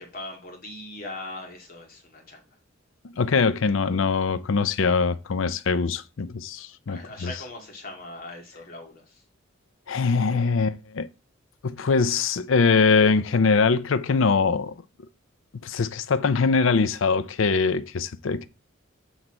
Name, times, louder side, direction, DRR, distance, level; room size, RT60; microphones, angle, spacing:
voice 1, 0.0-2.4 6.9-9.2, left 2 dB, 45° left, 2.1 m, -40 dB
voice 2, 3.2-7.3 9.9-11.1 11.6-14.7 15.6-18.5, left 4 dB, 70° left, 0.5 m, -22 dB
7.9 x 4.0 x 4.4 m
head